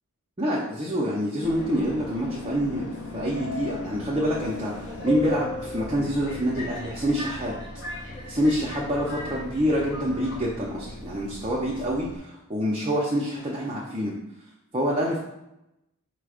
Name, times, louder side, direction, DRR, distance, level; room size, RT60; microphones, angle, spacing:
voice 1, 0.4-2.8 3.1-7.5 8.2-14.1 14.7-15.2, equal, 25° right, -5 dB, 0.5 m, -26 dB
Subway metro underground, 1.4-12.2, left 2 dB, 55° left, 1.0 m, -36 dB
4.9 x 2.2 x 4.8 m, 0.89 s
head